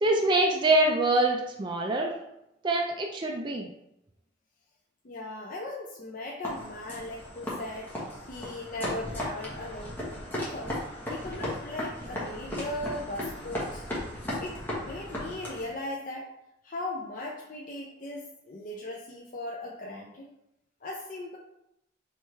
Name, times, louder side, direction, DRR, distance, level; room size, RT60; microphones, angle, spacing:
voice 1, 0.0-2.1 2.6-3.7, right 2 dB, 25° right, 0 dB, 0.4 m, -24 dB
voice 2, 5.0-10.0 10.3-10.8 11.1-13.9 14.4-16.3 16.6-20.3 20.8-21.4, left 1 dB, 45° left, -1 dB, 0.5 m, -38 dB
sound 1, 6.4-15.7, left 1 dB, 10° left, 1.1 m, -36 dB
4.6 x 3.3 x 3.2 m, 0.83 s
head